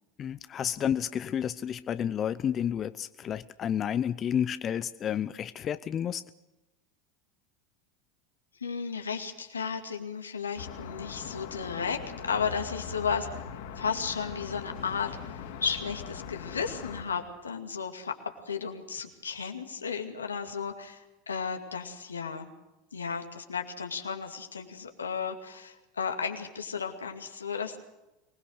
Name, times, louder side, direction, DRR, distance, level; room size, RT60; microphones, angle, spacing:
voice 1, 0.2-6.2, left 9 dB, 35° left, 14 dB, 0.7 m, -31 dB
voice 2, 8.6-13.4 13.8-18.1 18.5-22.5 22.9-27.8, left 6 dB, 85° left, 6 dB, 2.4 m, -34 dB
sound 1, 10.6-17.0, left 8 dB, 65° left, 3.8 m, -41 dB
24.5 x 20.0 x 6.5 m, 0.97 s
hypercardioid pair, 80°, 0 cm